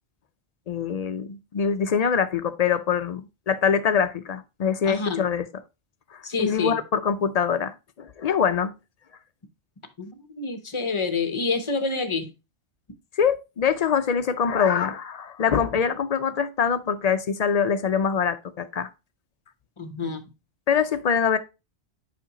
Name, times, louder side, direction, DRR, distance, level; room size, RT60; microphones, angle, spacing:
voice 1, 0.7-5.5 6.1-8.7 13.1-18.9 20.7-21.4, left 7 dB, 60° left, 0.4 m, -24 dB
voice 2, 4.9-5.3 6.2-6.8 10.0-10.1 10.4-12.3 19.8-20.3, left 4 dB, 30° left, 0.8 m, -27 dB
7.3 x 5.1 x 2.9 m
omnidirectional pair, 1.1 m